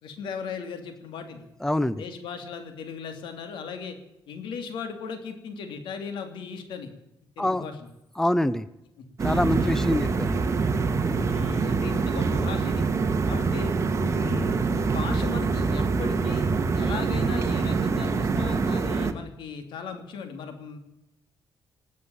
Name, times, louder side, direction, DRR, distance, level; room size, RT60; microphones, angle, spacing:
voice 1, 0.0-1.4 2.0-4.0 4.3-6.9 7.4-7.9 9.0-9.1 9.5-10.0 11.2-12.9 13.3-13.7 14.0-20.8, left 6 dB, 85° left, 7 dB, 2.9 m, -37 dB
voice 2, 1.6-2.0 7.4-7.6 8.2-8.7 9.2-10.6, left 1 dB, 5° left, 16 dB, 0.7 m, -25 dB
sound 1, 9.2-19.1, right 4 dB, 40° right, 1.6 m, -25 dB
18.5 x 8.5 x 8.9 m, 0.90 s
cardioid pair, 95°, 8 cm